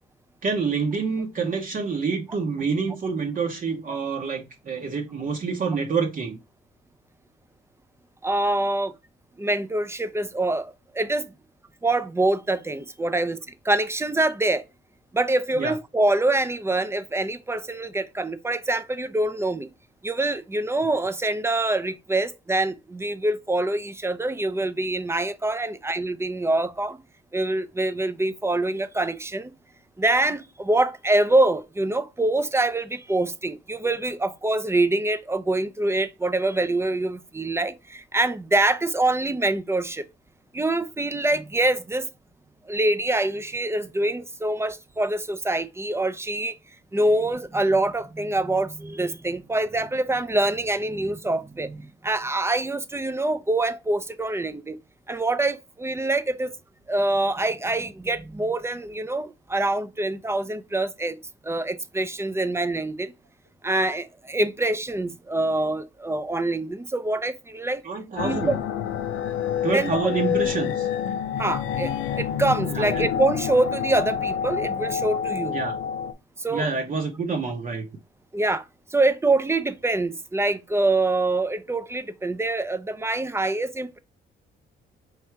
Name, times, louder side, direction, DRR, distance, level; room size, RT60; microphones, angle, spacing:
voice 1, 0.4-6.4 15.6-15.7 67.8-68.6 69.6-70.9 72.7-73.0 75.5-75.7 76.5-77.9, right 4 dB, 45° right, 0.8 m, -27 dB
voice 2, 8.2-8.9 9.4-11.3 11.8-13.4 13.7-14.6 15.1-19.7 20.0-27.0 27.3-29.5 30.0-40.0 40.5-42.1 42.7-46.6 46.9-54.8 55.1-56.5 56.9-61.2 61.4-63.1 63.6-67.8 68.2-68.5 69.7-70.1 71.4-75.6 76.4-76.7 78.3-78.6 78.9-84.0, right 2 dB, 15° right, 0.4 m, -25 dB
sound 1, 68.2-76.1, left 8 dB, 85° left, 0.5 m, -28 dB
3.2 x 2.7 x 4.5 m
cardioid pair, 90°, 20 cm